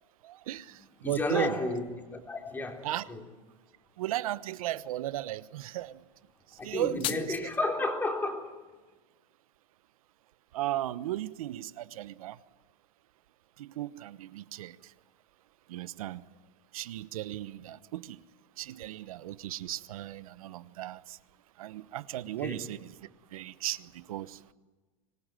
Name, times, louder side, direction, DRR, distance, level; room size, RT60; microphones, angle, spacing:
voice 1, 0.2-1.6 2.8-3.1 4.0-6.0 6.6-7.5 10.5-12.4 13.6-14.8 15.7-16.2 16.7-18.2 18.6-21.2 21.6-22.9 23.3-24.4, right 14 dB, 85° right, 15 dB, 1.1 m, -36 dB
voice 2, 1.0-3.2 6.6-8.5 22.4-22.7, left 2 dB, 10° left, 2 dB, 3.6 m, -32 dB
sound 1, 6.6-7.6, left 12 dB, 30° left, 0.9 m, -37 dB
25.5 x 20.0 x 9.1 m, 1.3 s
supercardioid pair, 155°, 18 cm